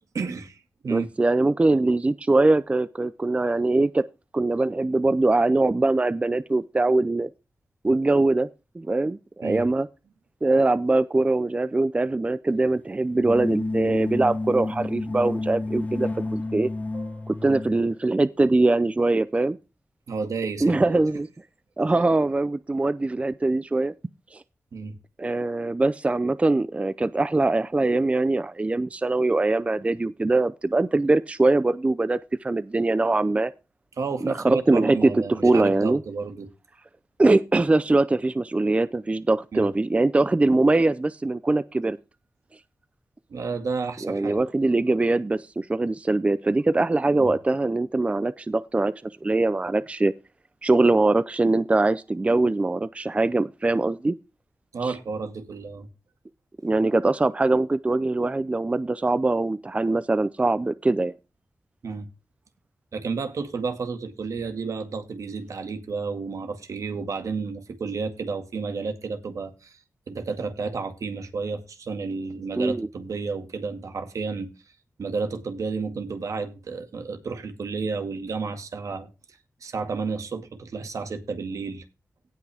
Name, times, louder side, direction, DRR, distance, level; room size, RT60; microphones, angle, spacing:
voice 1, 0.1-1.1 9.4-9.7 16.9-17.1 20.1-21.0 24.7-25.0 34.0-36.5 39.5-39.7 43.3-44.4 47.2-47.3 54.7-55.9 61.8-62.1 62.9-69.8 70.1-74.5 75.0-79.1 79.6-81.8, right 4 dB, 80° right, 2.0 m, -31 dB
voice 2, 0.9-4.0 4.3-7.3 7.8-8.5 8.7-9.9 10.4-16.7 17.3-19.6 20.6-21.3 21.8-23.9 24.3-24.4 25.2-33.5 34.2-36.0 37.2-42.0 44.0-50.1 50.6-54.1 54.8-54.9 56.6-61.1 72.6-72.9, right 2 dB, 25° right, 0.5 m, -22 dB
sound 1, 13.2-17.9, left 2 dB, 25° left, 0.5 m, -30 dB
17.5 x 6.0 x 3.5 m
wide cardioid pair, 100°, 6 cm